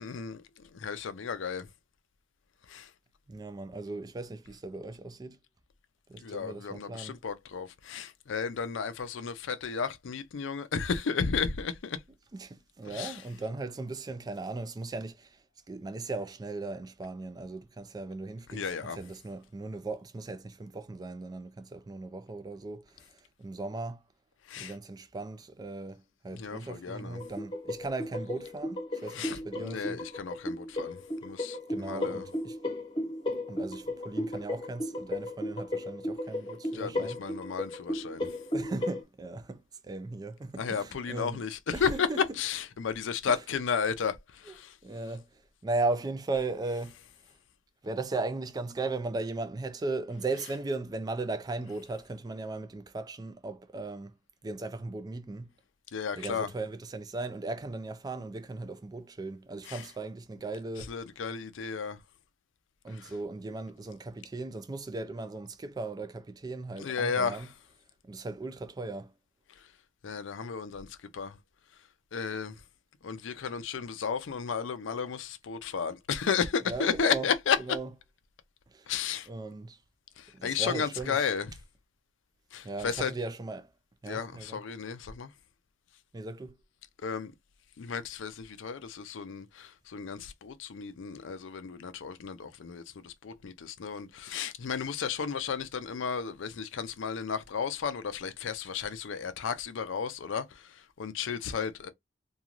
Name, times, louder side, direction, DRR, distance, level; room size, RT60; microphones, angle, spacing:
voice 1, 0.0-1.7 2.7-2.9 6.2-12.0 12.9-13.2 18.5-19.0 24.5-24.7 26.3-27.2 29.1-32.2 36.7-38.3 40.6-42.1 42.4-44.8 55.9-56.5 59.7-59.8 60.8-62.0 62.9-63.1 66.8-67.5 70.0-71.4 72.1-72.6 73.0-77.6 78.9-79.3 80.2-81.5 82.5-83.1 84.1-85.3 87.0-87.3 87.8-101.9, left 6 dB, 65° left, 0.4 m, -33 dB
voice 2, 3.3-5.4 6.1-7.2 12.3-24.0 24.6-30.0 31.7-32.6 33.5-37.2 38.5-41.4 41.7-42.2 43.3-43.4 44.5-44.6 44.8-47.0 47.8-54.1 54.4-55.5 56.2-60.9 62.8-67.5 68.0-69.1 76.6-77.3 77.6-77.9 78.7-78.9 79.3-79.8 80.3-81.2 82.6-83.7 84.0-84.6 86.1-86.6, right 3 dB, 20° right, 0.3 m, -37 dB
sound 1, 27.1-39.0, left 1 dB, 25° left, 0.8 m, -35 dB
2.9 x 2.3 x 2.4 m
head